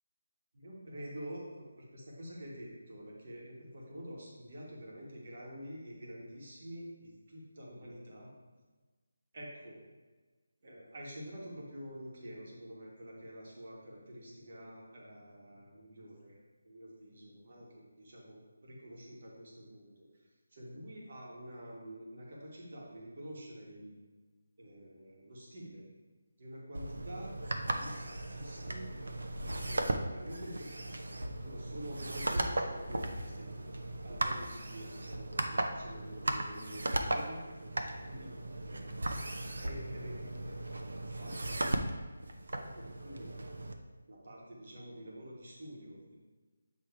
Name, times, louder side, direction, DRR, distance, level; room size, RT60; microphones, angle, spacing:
voice 1, 0.5-8.3 9.3-9.8 10.6-16.4 16.6-20.1 20.5-23.9 24.6-25.9 26.4-27.3 27.6-28.9 29.7-33.5 34.0-38.4 38.6-38.9 39.6-40.6 41.1-41.9 42.5-43.3 44.1-46.2, equal, 35° right, -3 dB, 1.3 m, -48 dB
sound 1, 26.7-43.7, right 1 dB, 65° right, 0.6 m, -37 dB
7.9 x 3.1 x 4.6 m, 1.3 s
figure-of-eight pair, 180°, 0 cm